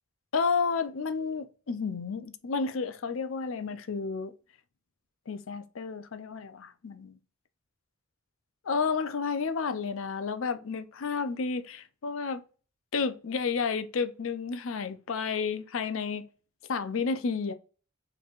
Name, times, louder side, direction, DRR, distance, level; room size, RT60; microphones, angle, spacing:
voice 1, 0.3-4.3 5.3-7.2 8.6-12.4 12.9-16.3 16.7-17.5, left 5 dB, 70° left, 0.5 m, -31 dB
4.2 x 3.2 x 2.4 m
head